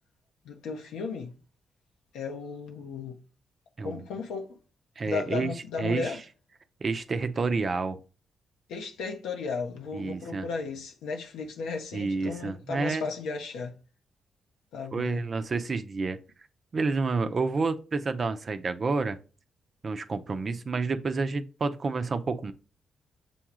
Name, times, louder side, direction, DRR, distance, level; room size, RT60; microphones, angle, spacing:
voice 1, 0.4-1.3 2.1-3.2 3.8-4.6 5.0-6.2 8.7-13.7 14.7-15.2, left 4 dB, 80° left, 0.8 m, -35 dB
voice 2, 5.0-5.5 5.8-6.2 6.8-8.0 9.9-10.5 11.9-13.1 14.9-16.2 16.7-19.2 19.8-22.5, right 4 dB, 50° right, 0.6 m, -29 dB
6.9 x 2.4 x 3.0 m
hypercardioid pair, 45°, 0 cm